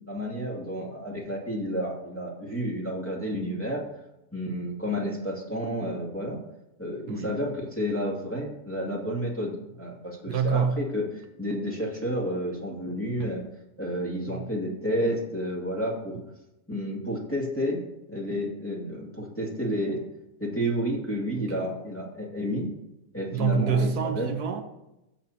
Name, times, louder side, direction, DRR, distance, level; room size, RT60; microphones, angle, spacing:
voice 1, 0.0-3.8 4.3-6.4 6.8-13.4 13.8-16.2 16.7-17.8 18.1-20.0 20.4-22.7 23.1-24.3, equal, 10° left, 2.2 m, -30 dB
voice 2, 10.3-10.8 14.3-14.5 21.3-21.6 23.3-24.6, right 5 dB, 90° right, 1.5 m, -27 dB
15.5 x 7.4 x 2.8 m
omnidirectional pair, 1.6 m